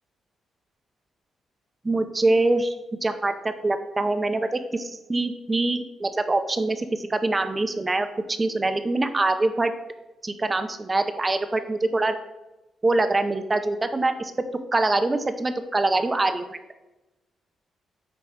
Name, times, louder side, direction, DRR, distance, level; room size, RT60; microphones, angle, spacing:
voice 1, 1.8-2.7 3.0-8.1 8.4-9.7 10.2-12.2 12.8-14.3 14.7-16.6, right 2 dB, 25° right, 9 dB, 0.6 m, -24 dB
8.5 x 3.0 x 4.5 m, 1.0 s
cardioid pair, 95°, 0 cm